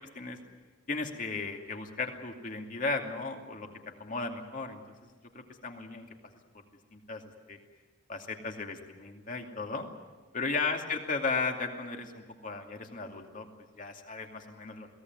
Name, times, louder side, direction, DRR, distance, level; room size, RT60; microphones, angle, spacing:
voice 1, 0.9-3.7 4.0-4.8 5.3-6.1 6.5-6.6 6.9-7.2 7.5-7.6 8.1-9.9 10.3-13.5 13.8-14.9, left 4 dB, 45° left, 3 dB, 2.5 m, -35 dB
22.5 x 17.5 x 9.5 m, 1.3 s
head